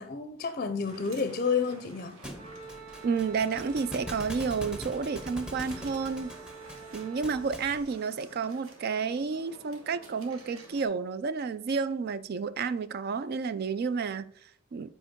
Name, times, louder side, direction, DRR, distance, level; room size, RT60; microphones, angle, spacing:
voice 1, 0.0-2.2, left 5 dB, 40° left, 0.5 m, -30 dB
sound 1, 0.8-10.9, right 2 dB, 85° right, 1.7 m, -51 dB
Thump thud, 2.2-7.8, equal, 5° right, 0.7 m, -43 dB
Wind instrument woodwind instrument, 2.4-7.5, right 5 dB, 25° right, 1.2 m, -48 dB
voice 2, 3.0-6.3 6.9-14.9, right 5 dB, 50° right, 0.3 m, -31 dB
7.7 x 4.5 x 3.6 m
head